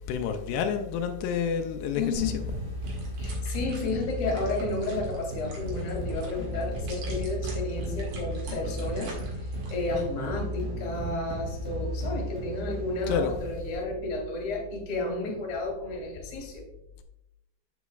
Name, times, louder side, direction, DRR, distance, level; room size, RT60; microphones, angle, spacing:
voice 1, 0.1-2.4 13.1-13.3, left 7 dB, 85° left, 2.6 m, -29 dB
voice 2, 2.0-2.4 3.2-9.1 9.7-16.7, left 2 dB, 40° left, 2.3 m, -32 dB
sound 1, 2.1-13.6, equal, 90° right, 4.5 m, -35 dB
sound 2, 2.5-10.0, right 2 dB, 60° right, 3.1 m, -47 dB
8.1 x 8.0 x 2.3 m
omnidirectional pair, 4.6 m